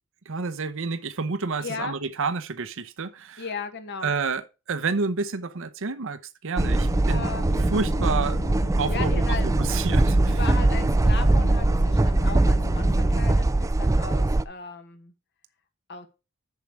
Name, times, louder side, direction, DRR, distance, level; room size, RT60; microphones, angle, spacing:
voice 1, 0.3-3.4 4.0-7.3 7.6-8.4 8.8-10.4, right 4 dB, 65° right, 0.8 m, -29 dB
voice 2, 1.6-2.0 3.4-4.1 7.1-7.6 8.9-9.5 10.3-15.1 15.9-16.1, left 4 dB, 55° left, 1.4 m, -36 dB
sound 1, 6.6-13.4, left 1 dB, 40° left, 1.5 m, -34 dB
sound 2, 6.6-14.4, right 2 dB, 15° right, 0.4 m, -22 dB
7.1 x 6.7 x 4.7 m
head